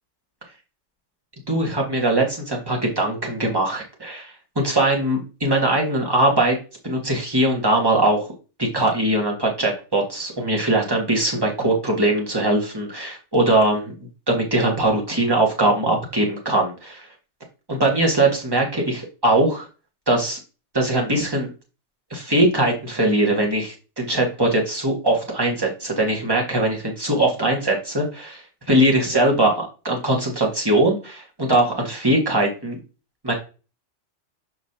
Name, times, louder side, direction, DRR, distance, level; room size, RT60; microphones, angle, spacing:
voice 1, 1.5-6.6 6.8-8.2 8.6-13.9 14.3-17.1 17.7-19.7 20.1-20.4 20.7-21.5 22.1-28.4 28.7-32.8 33.2-33.3, right 1 dB, 20° right, -1 dB, 1.8 m, -21 dB
6.6 x 5.8 x 2.9 m, 0.33 s
omnidirectional pair, 1.3 m